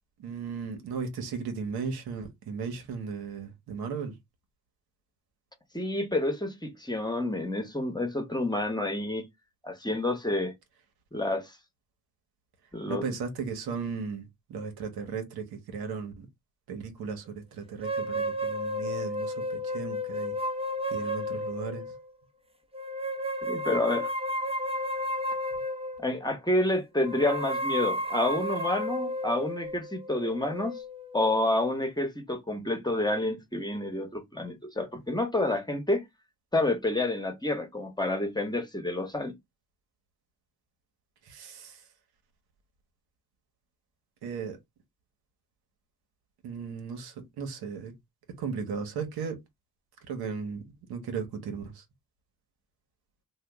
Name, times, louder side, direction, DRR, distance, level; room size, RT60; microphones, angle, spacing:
voice 1, 0.2-4.2 12.9-16.3 16.7-20.4 20.9-21.9 41.2-41.9 44.2-44.6 46.4-47.9 48.4-49.4 50.0-50.6 50.9-51.8, right 5 dB, 80° right, 1.1 m, -36 dB
voice 2, 5.7-9.2 9.6-10.5 11.1-11.5 12.7-13.0 23.4-24.1 26.0-30.8 31.1-36.0 36.5-39.4, left 1 dB, 10° left, 1.1 m, -29 dB
sound 1, 17.8-22.0 22.7-26.2 27.0-31.4, equal, 15° right, 0.8 m, -32 dB
2.8 x 2.3 x 3.5 m
supercardioid pair, 55°, 37 cm